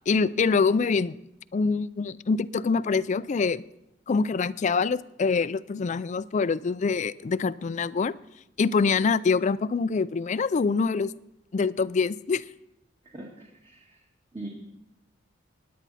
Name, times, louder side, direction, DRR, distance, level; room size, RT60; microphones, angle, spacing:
voice 1, 0.1-1.2 1.5-3.6 4.1-8.2 8.6-11.1 11.5-12.4, left 4 dB, 40° left, 0.4 m, -25 dB
voice 2, 13.1-14.0 14.3-14.5, right 2 dB, 25° right, 1.8 m, -41 dB
17.0 x 10.5 x 4.1 m
head